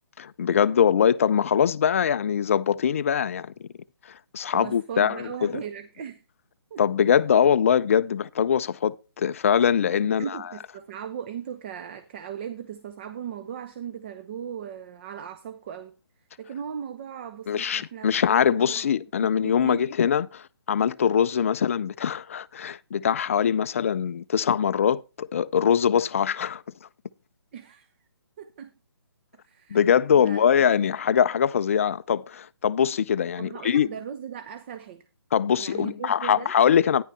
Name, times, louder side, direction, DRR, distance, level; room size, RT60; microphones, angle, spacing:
voice 1, 0.2-3.7 4.3-5.5 6.8-10.4 17.5-26.6 29.7-33.9 35.3-37.0, left 8 dB, 35° left, 0.4 m, -22 dB
voice 2, 4.5-6.2 6.7-6.8 10.0-15.9 16.4-18.9 19.2-19.9 27.5-27.9 28.4-28.7 29.4-29.8 30.1-30.4 33.4-35.1 35.6-36.5, right 8 dB, 25° right, 0.6 m, -38 dB
10.5 x 10.0 x 3.3 m
figure-of-eight pair, 140°, 13 cm